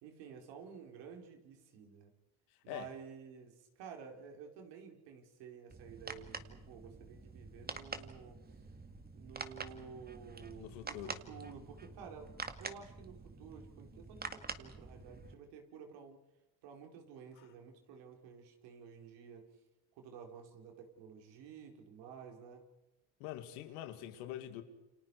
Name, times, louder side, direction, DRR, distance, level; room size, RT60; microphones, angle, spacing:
voice 1, 0.0-2.1 2.6-8.4 9.1-12.3 12.6-16.2 16.6-19.5 20.0-22.6, right 6 dB, 75° right, 4.6 m, -52 dB
sound 1, 5.7-15.3, right 4 dB, 20° right, 2.1 m, -47 dB
voice 2, 10.6-11.2 17.4-17.5 23.2-24.6, left 12 dB, 85° left, 2.3 m, -45 dB
29.5 x 26.0 x 4.8 m
supercardioid pair, 80°, 43 cm